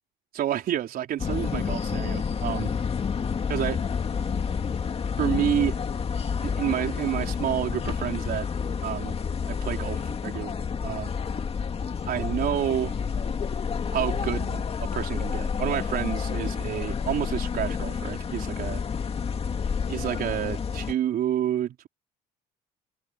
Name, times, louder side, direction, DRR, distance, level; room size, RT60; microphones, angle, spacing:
voice 1, 0.3-2.7 3.5-3.8 5.2-5.8 6.4-8.5 8.8-9.2 9.5-11.1 12.1-12.9 13.9-18.8 19.9-21.9, right 11 dB, 60° right, 4.6 m, -29 dB
sound 1, 1.2-20.9, left 6 dB, 35° left, 2.3 m, -29 dB
open air
cardioid pair, 110°, 17 cm